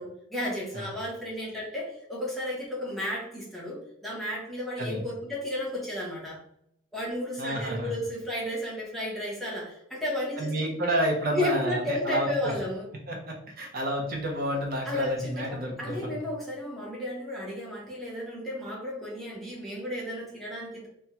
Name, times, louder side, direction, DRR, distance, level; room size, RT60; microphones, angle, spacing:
voice 1, 0.0-6.4 6.9-10.7 11.3-12.9 14.8-20.9, left 1 dB, ahead, -5 dB, 0.7 m, -33 dB
voice 2, 7.4-7.9 10.4-12.5 13.1-16.2, right 1 dB, 50° right, -1 dB, 0.6 m, -30 dB
3.4 x 2.2 x 2.8 m, 0.75 s
head